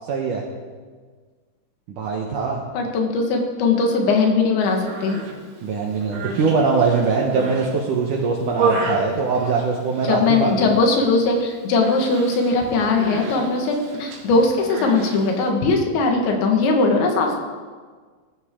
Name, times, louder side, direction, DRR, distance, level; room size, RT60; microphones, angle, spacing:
voice 1, 0.1-0.4 1.9-2.6 5.6-10.7, right 4 dB, 70° right, 0 dB, 2.0 m, -22 dB
voice 2, 2.7-5.2 10.0-17.4, left 3 dB, 85° left, 2 dB, 4.0 m, -20 dB
Human voice, 4.7-5.3 5.9-7.7 8.1-10.1 10.4-10.9 11.1-11.4 11.8-15.5, right 4 dB, 90° right, 4.6 m, -30 dB
19.0 x 13.5 x 3.7 m, 1.5 s
omnidirectional pair, 5.1 m